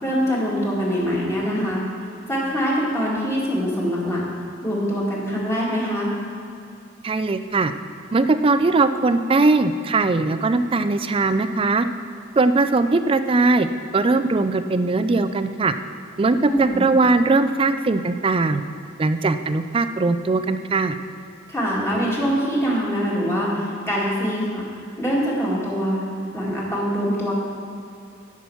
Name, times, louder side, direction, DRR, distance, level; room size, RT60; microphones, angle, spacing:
voice 1, 0.0-1.8 2.3-4.2 4.6-6.1 16.5-16.9 21.5-24.6 25.0-26.0 26.3-27.3, equal, 15° left, -6 dB, 2.3 m, -23 dB
voice 2, 7.0-7.7 8.1-11.9 12.4-13.7 13.9-15.7 16.2-18.6 19.0-21.0, right 3 dB, 30° right, 10 dB, 0.4 m, -20 dB
12.0 x 6.0 x 5.6 m, 2.5 s
head